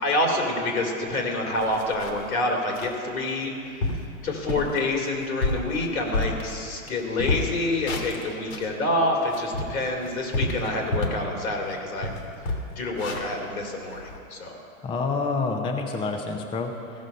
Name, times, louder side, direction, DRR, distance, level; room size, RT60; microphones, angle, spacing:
voice 1, 0.0-12.1 12.5-14.6, left 2 dB, 85° left, 0 dB, 2.8 m, -27 dB
sound 1, 1.1-1.2 1.5-2.3 2.7-3.0 3.4-3.5 3.8-4.1 4.5-4.8 5.2-6.9 7.2-8.7 9.2-11.3 11.7-11.8 12.0-14.2, left 2 dB, 65° left, 1.8 m, -30 dB
voice 2, 14.8-17.1, left 4 dB, 15° left, 3 dB, 0.6 m, -28 dB
16.0 x 6.2 x 5.3 m, 2.5 s
hypercardioid pair, 125°, 42 cm